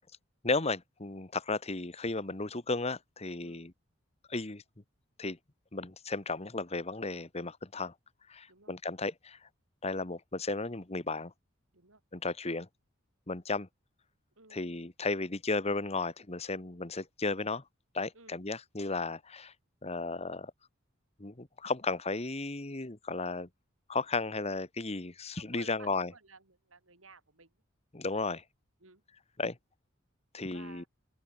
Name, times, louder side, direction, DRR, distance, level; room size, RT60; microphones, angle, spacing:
voice 1, 0.4-3.7 4.3-4.6 5.2-5.4 5.7-7.9 8.3-9.4 9.8-11.3 12.1-12.7 13.3-13.7 14.5-17.6 17.9-19.5 19.8-20.5 21.2-23.5 23.9-26.1 27.9-28.4 29.4-29.6 30.3-30.8, left 3 dB, 30° left, 1.5 m, -34 dB
voice 2, 25.4-27.6 28.8-29.0 30.5-30.9, right 4 dB, 80° right, 6.0 m, -55 dB
open air
head